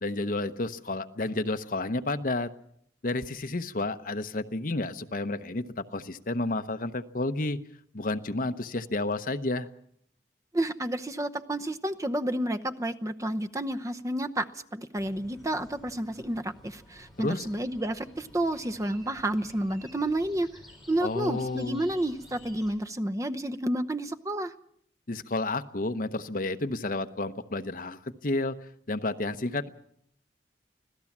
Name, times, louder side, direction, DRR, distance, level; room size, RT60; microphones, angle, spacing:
voice 1, 0.0-2.5 3.0-7.6 7.9-9.7 17.2-17.5 21.0-21.8 25.1-28.6 28.9-29.7, left 2 dB, 50° left, 10 dB, 1.0 m, -31 dB
voice 2, 10.5-20.5 20.9-24.5, right 1 dB, 20° right, 9 dB, 0.8 m, -30 dB
sound 1, 14.9-22.8, left 1 dB, ahead, 5.7 m, -53 dB
25.5 x 17.0 x 7.3 m, 0.69 s
head